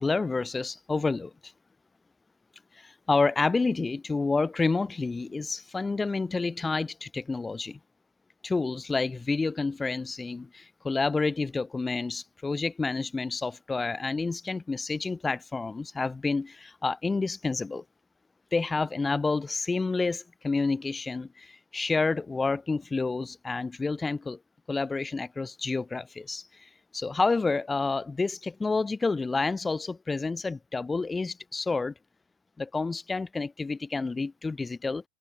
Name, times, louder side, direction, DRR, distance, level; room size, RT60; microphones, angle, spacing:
voice 1, 0.0-1.5 2.8-7.8 8.4-17.8 18.5-24.4 24.7-31.9 32.6-35.0, left 3 dB, 10° left, 3.6 m, -29 dB
figure-of-eight pair, 90°, 0 cm